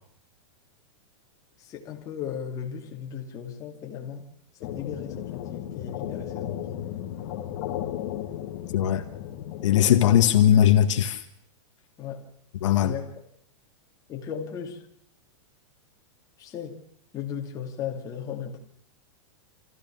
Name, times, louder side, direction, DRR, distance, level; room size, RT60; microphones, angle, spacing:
voice 1, 1.6-4.3 4.6-6.9 12.0-12.3 12.8-13.1 14.1-14.8 16.4-16.8 17.1-18.6, left 8 dB, 20° left, 2.7 m, -36 dB
sound 1, 4.6-10.3, left 11 dB, 45° left, 1.8 m, -35 dB
voice 2, 8.7-9.0 9.6-11.2 12.6-12.9, left 10 dB, 65° left, 1.8 m, -19 dB
27.0 x 15.0 x 7.2 m
supercardioid pair, 160°, 17 cm